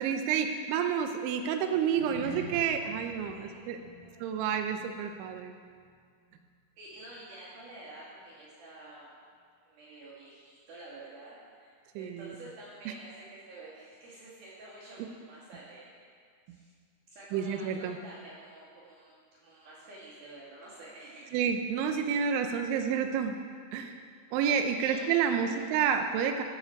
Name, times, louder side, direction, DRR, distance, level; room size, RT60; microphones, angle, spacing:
voice 1, 0.0-3.8 4.2-5.5 12.0-12.3 17.3-18.0 21.3-23.4 23.7-24.0 24.3-26.4, right 7 dB, 90° right, 6 dB, 3.1 m, -29 dB
sound 1, 1.8-6.5 6.7-7.0 7.5-7.6, equal, 40° left, 3.4 m, -48 dB
voice 2, 3.3-4.4 6.8-9.2 9.6-15.9 16.5-16.7 17.1-19.1 19.4-21.5 22.7-22.8 24.8-25.1 25.4-25.7, right 2 dB, 60° right, -12 dB, 3.8 m, -49 dB
14.5 x 8.2 x 4.6 m, 2.1 s
omnidirectional pair, 5.3 m